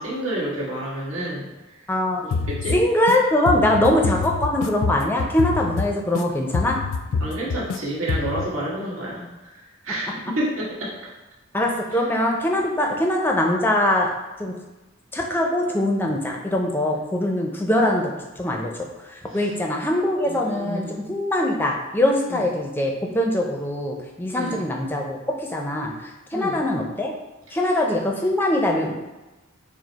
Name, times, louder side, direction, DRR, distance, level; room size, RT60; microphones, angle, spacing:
voice 1, 0.0-1.5 2.5-2.8 3.7-3.8 7.2-11.1 19.3-19.5 20.2-21.0 22.3-22.5 24.3-24.7 26.3-26.6, right 1 dB, 75° right, -6 dB, 1.3 m, -30 dB
voice 2, 1.9-2.3 2.7-6.8 10.1-10.2 11.5-14.1 14.4-14.5 15.1-27.1 27.5-28.9, left 1 dB, 10° left, 1 dB, 0.4 m, -22 dB
sound 1, 2.3-3.2 3.5-6.2 6.5-7.8 8.1-8.5, left 4 dB, 75° left, 0.4 m, -26 dB
5.0 x 2.0 x 3.9 m, 1.1 s
head